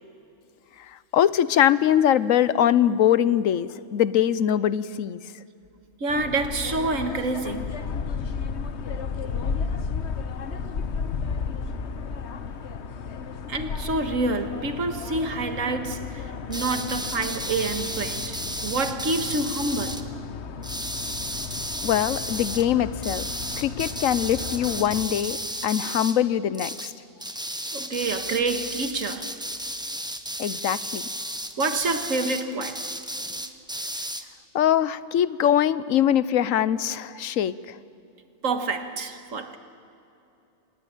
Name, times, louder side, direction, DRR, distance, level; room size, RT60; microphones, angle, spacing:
voice 1, 0.8-5.2 21.8-23.3 23.6-26.9 30.4-31.1 34.5-37.8, left 10 dB, 85° left, 1.1 m, -22 dB
voice 2, 6.0-7.8 13.5-20.1 27.7-29.3 31.6-32.9 38.4-39.6, right 3 dB, 80° right, 1.9 m, -28 dB
sound 1, 6.1-25.1, left 5 dB, 60° left, 1.2 m, -33 dB
sound 2, 16.5-20.0 20.6-22.6 23.0-26.2 26.5-26.9 27.2-34.2, right 1 dB, 5° right, 0.8 m, -33 dB
26.5 x 19.0 x 8.9 m
omnidirectional pair, 1.3 m